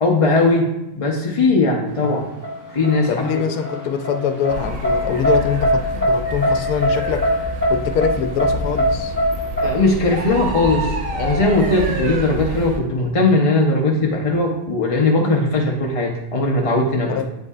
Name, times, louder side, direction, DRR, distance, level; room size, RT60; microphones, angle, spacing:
voice 1, 0.0-2.3 2.7-3.4 9.6-17.2, left 2 dB, 40° left, 0 dB, 0.5 m, -19 dB
sound 1, 2.0-9.7, equal, 15° right, 1.1 m, -21 dB
voice 2, 3.1-7.4 7.7-9.1 17.1-17.2, left 7 dB, 85° left, 8 dB, 1.1 m, -23 dB
sound 2, 4.5-12.8, equal, 65° right, 1.3 m, -28 dB
8.7 x 5.4 x 2.4 m, 0.90 s
omnidirectional pair, 1.6 m